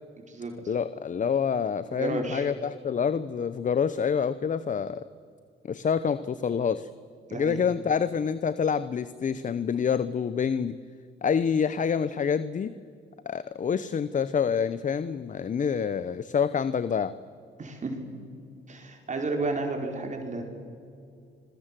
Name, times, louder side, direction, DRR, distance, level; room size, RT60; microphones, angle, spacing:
voice 1, 0.7-5.0 5.7-6.9 7.3-10.8 11.2-12.7 13.3-17.1, left 7 dB, 40° left, 15 dB, 0.8 m, -27 dB
voice 2, 2.0-2.5 7.3-7.6 17.6-18.0 18.7-20.4, right 3 dB, 35° right, 2 dB, 4.9 m, -31 dB
27.5 x 22.0 x 7.6 m, 2.4 s
cardioid pair, 90°, 20 cm